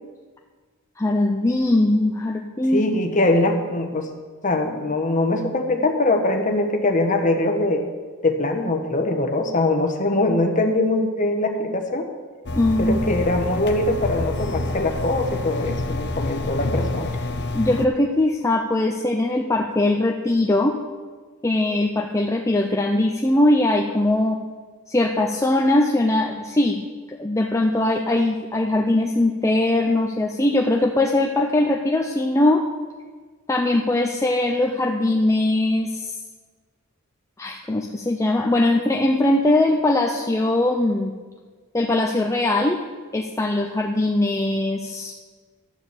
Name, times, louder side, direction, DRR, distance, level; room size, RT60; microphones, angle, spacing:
voice 1, 1.0-2.8 12.6-13.1 17.5-20.8 21.4-24.4 24.9-26.8 27.1-32.6 33.5-36.1 37.4-41.1 41.7-42.8 43.1-45.1, left 1 dB, 15° left, 1 dB, 0.5 m, -21 dB
voice 2, 2.7-4.1 4.4-7.8 8.2-12.1 12.8-17.1, left 2 dB, 35° left, 4 dB, 1.2 m, -22 dB
sound 1, 12.5-17.9, left 2 dB, 50° left, 0.7 m, -27 dB
11.5 x 6.9 x 7.2 m, 1.5 s
head